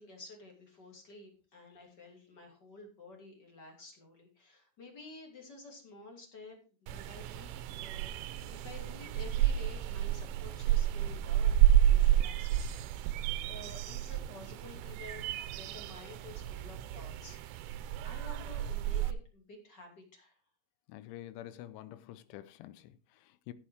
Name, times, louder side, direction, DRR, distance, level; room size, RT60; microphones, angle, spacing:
voice 1, 0.0-13.2 13.5-20.3, left 2 dB, 30° left, 2.5 m, -52 dB
sound 1, 6.9-19.1, right 12 dB, 85° right, 3.3 m, -30 dB
voice 2, 20.9-23.5, left 13 dB, 80° left, 3.2 m, -48 dB
15.0 x 6.4 x 4.7 m
omnidirectional pair, 5.5 m